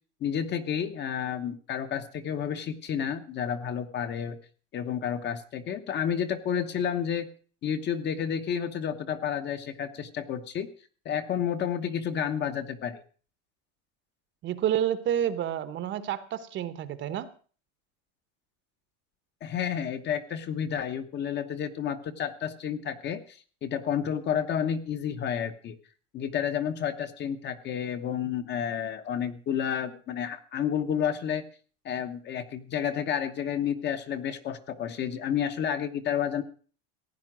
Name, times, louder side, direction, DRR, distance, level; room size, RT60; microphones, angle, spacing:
voice 1, 0.2-4.4 4.7-7.3 7.6-10.7 11.0-13.0 19.4-25.8 26.1-31.4 31.8-36.4, left 8 dB, 30° left, 9 dB, 1.0 m, -30 dB
voice 2, 14.4-17.3, right 10 dB, 30° right, 13 dB, 1.0 m, -29 dB
16.0 x 9.8 x 6.1 m, 0.42 s
supercardioid pair, 155°, 35 cm